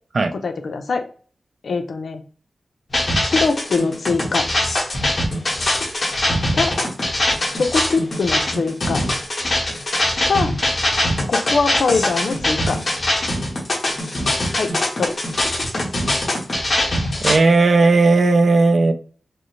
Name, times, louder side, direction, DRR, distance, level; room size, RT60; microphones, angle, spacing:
voice 1, 0.3-1.0 1.6-2.2 3.2-4.5 6.5-6.7 7.5-9.0 10.2-10.5 11.3-12.8 14.6-15.2, left 4 dB, 75° left, 6 dB, 0.6 m, -22 dB
sound 1, 2.9-17.4, left 1 dB, 45° left, 1.4 m, -22 dB
voice 2, 17.2-18.9, right 3 dB, 55° right, 8 dB, 0.5 m, -15 dB
5.2 x 2.1 x 3.1 m, 0.42 s
wide cardioid pair, 110°, 0 cm